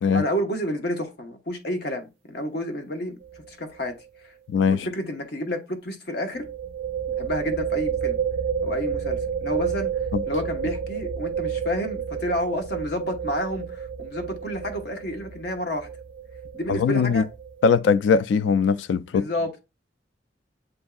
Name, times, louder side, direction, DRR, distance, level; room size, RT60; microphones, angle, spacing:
voice 1, 0.1-3.2 3.5-3.9 4.2-4.3 4.7-6.5 7.2-8.2 8.6-15.9 16.5-17.2 19.1-19.6, equal, 60° left, 1.0 m, -30 dB
sound 1, 3.2-3.5 3.7-3.8 6.3-17.7, right 7 dB, 65° right, 0.3 m, -30 dB
voice 2, 4.5-4.9 10.1-10.2 16.7-17.2 17.6-19.3, left 5 dB, 85° left, 0.3 m, -20 dB
7.9 x 2.6 x 2.3 m
head